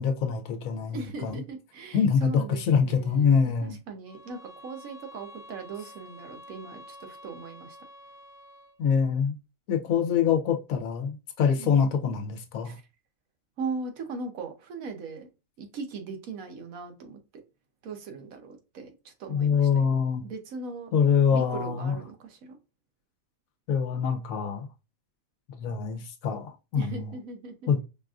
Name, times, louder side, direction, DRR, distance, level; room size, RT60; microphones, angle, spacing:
voice 1, 0.0-1.4 1.9-3.8 8.8-9.3 9.7-12.8 19.3-20.2 20.9-22.0 23.7-24.7 25.6-27.1 27.7-27.8, left 6 dB, 85° left, 1.1 m, -25 dB
voice 2, 0.9-3.4 3.6-7.8 11.6-11.8 12.6-12.7 13.6-15.3 15.6-17.2 17.8-20.0 20.2-20.9 21.3-22.6 26.7-27.7, right 4 dB, 80° right, 1.2 m, -39 dB
sound 1, 4.1-8.8, left 1 dB, 35° left, 0.6 m, -49 dB
5.1 x 2.4 x 2.4 m
omnidirectional pair, 1.4 m